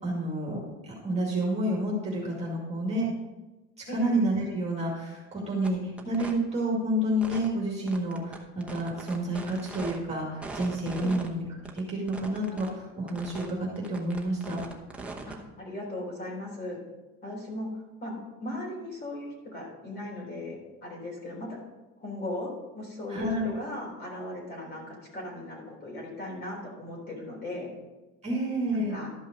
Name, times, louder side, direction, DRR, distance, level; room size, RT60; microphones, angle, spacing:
voice 1, 0.0-3.1 3.8-11.5 11.7-14.6 23.1-23.5 28.2-29.0, right 1 dB, 20° right, -3 dB, 2.2 m, -29 dB
sound 1, 5.6-5.7 6.0-6.3 7.2-7.5 7.9-10.0 10.4-11.3 11.6-12.7 13.1-13.5 13.8-15.3, right 3 dB, 5° right, 0.9 m, -40 dB
voice 2, 15.3-16.8 17.2-21.6 22.0-27.7 28.7-29.1, left 1 dB, 30° left, -2 dB, 3.8 m, -38 dB
12.5 x 5.5 x 5.2 m, 1.1 s
cardioid pair, 150°, 31 cm